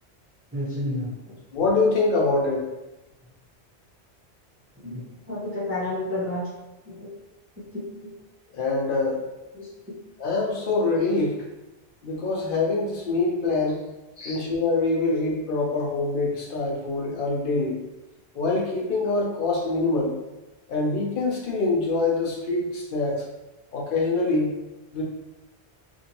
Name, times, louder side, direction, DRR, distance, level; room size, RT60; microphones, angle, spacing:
voice 1, 0.5-1.4 4.8-6.5 6.9-7.1 7.7-8.1 9.5-9.7 14.2-14.4, left 1 dB, 15° right, -8 dB, 0.5 m, -31 dB
voice 2, 1.5-2.7 8.5-9.2 10.2-11.5 12.0-13.9 14.2-17.8 18.3-20.2 20.7-23.3 23.7-24.6 24.9-25.0, left 3 dB, 55° left, -2 dB, 0.8 m, -24 dB
2.7 x 2.6 x 2.8 m, 1.0 s
omnidirectional pair, 1.1 m